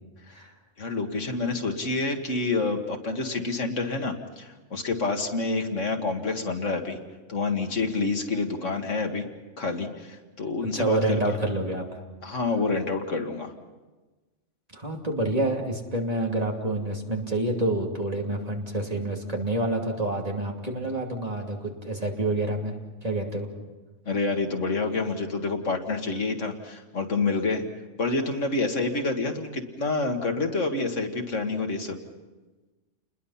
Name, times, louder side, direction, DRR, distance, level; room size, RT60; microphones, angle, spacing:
voice 1, 0.8-7.0 7.3-9.3 9.6-11.2 12.2-13.5 24.1-27.6 28.0-32.0, left 3 dB, 85° left, 4 dB, 2.3 m, -28 dB
voice 2, 10.7-12.0 14.7-22.7 23.0-23.5, right 1 dB, 30° right, 1 dB, 2.8 m, -28 dB
29.5 x 21.0 x 5.8 m, 1.2 s
omnidirectional pair, 1.2 m